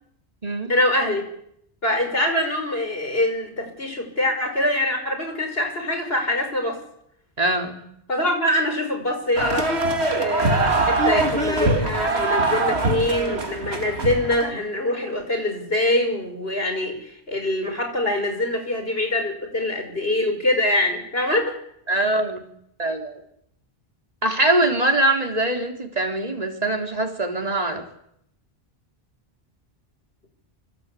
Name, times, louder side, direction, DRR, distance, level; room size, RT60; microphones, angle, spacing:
voice 1, 0.7-1.2 1.8-6.8 8.1-9.7 10.2-21.6, left 1 dB, 70° left, 5 dB, 6.0 m, -24 dB
voice 2, 7.4-7.8 21.9-22.5 22.8-23.1 24.2-27.9, right 2 dB, 35° right, 3 dB, 3.8 m, -22 dB
sound 1, 9.4-14.5, right 2 dB, 90° right, 2.5 m, -22 dB
25.5 x 24.5 x 8.5 m, 0.73 s
omnidirectional pair, 1.1 m